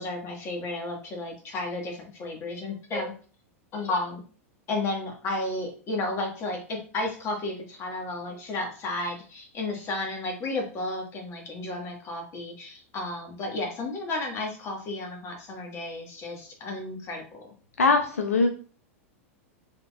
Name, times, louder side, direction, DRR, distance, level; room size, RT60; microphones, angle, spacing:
voice 1, 0.0-3.1 3.7-4.2 4.7-17.5, left 2 dB, 35° left, 1 dB, 1.4 m, -33 dB
voice 2, 17.8-18.5, left 3 dB, 90° left, 5 dB, 0.6 m, -21 dB
3.6 x 3.4 x 2.3 m, 0.39 s
hypercardioid pair, 100°, 8 cm